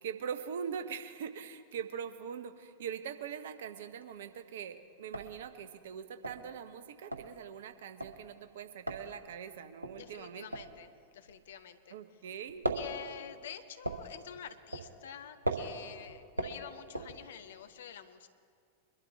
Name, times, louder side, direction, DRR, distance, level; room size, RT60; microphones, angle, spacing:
voice 1, 0.0-10.5 11.9-12.6, right 7 dB, 60° right, 9 dB, 0.9 m, -42 dB
sound 1, 3.7-4.3 4.6-4.7 5.0-12.0 12.3-17.6, right 1 dB, 80° right, 1.1 m, -39 dB
voice 2, 9.9-12.0 12.7-18.3, left 8 dB, 60° left, 10 dB, 0.8 m, -48 dB
23.0 x 12.0 x 3.4 m, 2.1 s
figure-of-eight pair, 90°, 0 cm